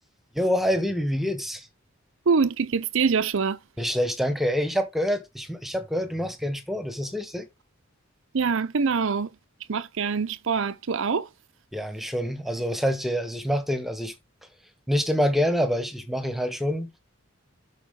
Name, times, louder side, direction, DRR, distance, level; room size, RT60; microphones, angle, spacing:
voice 1, 0.3-1.7 3.8-7.5 11.7-14.1 14.9-17.0, equal, ahead, 1.3 m, -26 dB
voice 2, 2.3-3.6 8.3-9.3 9.7-11.3, right 5 dB, 65° right, 0.6 m, -24 dB
12.0 x 4.9 x 3.7 m
head